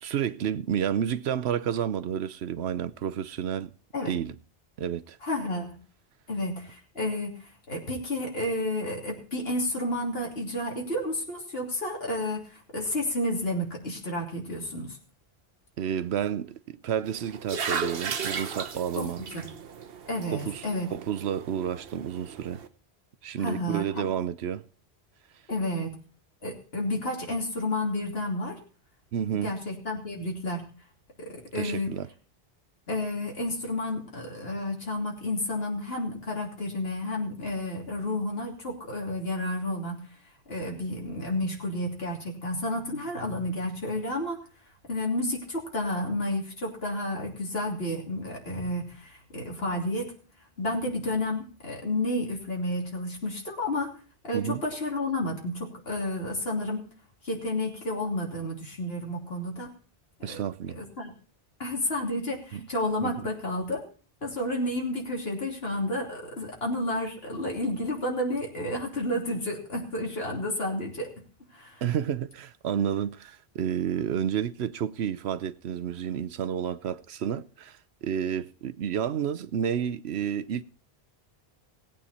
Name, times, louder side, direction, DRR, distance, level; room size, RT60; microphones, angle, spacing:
voice 1, 0.0-3.7 4.1-4.4 4.8-5.2 15.8-19.2 20.3-22.6 23.2-24.6 29.1-29.6 31.5-32.1 54.3-54.6 60.2-60.8 62.5-62.7 63.0-63.3 71.8-80.6, right 9 dB, 85° right, 1.0 m, -30 dB
voice 2, 5.2-5.8 6.3-7.4 7.7-15.0 18.9-19.5 20.1-20.9 23.4-24.1 25.5-25.9 26.4-28.6 29.4-30.6 31.2-31.9 32.9-40.0 40.5-44.4 44.9-50.1 50.6-53.9 54.2-56.8 57.2-59.7 60.2-60.4 60.7-61.1 61.6-63.8 64.2-71.1 71.5-71.8, left 1 dB, 70° left, 3.2 m, -31 dB
sound 1, 17.0-22.7, right 5 dB, 65° right, 1.2 m, -36 dB
18.0 x 8.7 x 4.2 m
omnidirectional pair, 1.1 m